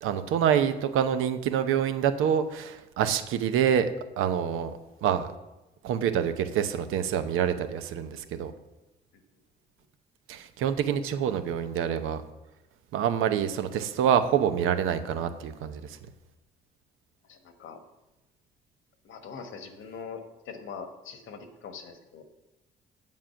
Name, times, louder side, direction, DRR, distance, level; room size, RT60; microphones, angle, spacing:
voice 1, 0.0-3.9 4.2-4.7 5.0-5.3 5.8-8.5 10.3-12.2 12.9-16.0, right 9 dB, 85° right, 10 dB, 0.8 m, -26 dB
voice 2, 17.3-17.8 19.0-22.2, left 6 dB, 75° left, 7 dB, 1.3 m, -42 dB
7.6 x 7.5 x 5.7 m, 0.99 s
supercardioid pair, 70°, 21 cm